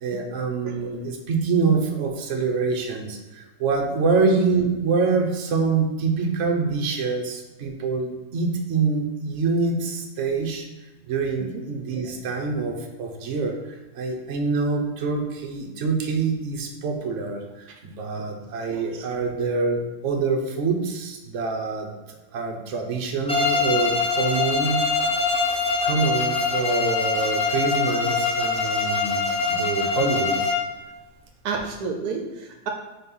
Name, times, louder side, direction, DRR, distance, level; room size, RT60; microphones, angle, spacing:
voice 1, 0.0-10.7 11.1-13.5 13.9-17.4 17.7-21.9 22.3-24.8 25.6-30.5, right 4 dB, 55° right, 2 dB, 1.1 m, -25 dB
Bowed string instrument, 23.3-30.8, left 4 dB, 5° left, 0.4 m, -24 dB
voice 2, 31.4-32.7, right 4 dB, 75° right, 3 dB, 1.2 m, -30 dB
4.3 x 4.1 x 5.4 m, 1.1 s
omnidirectional pair, 1.7 m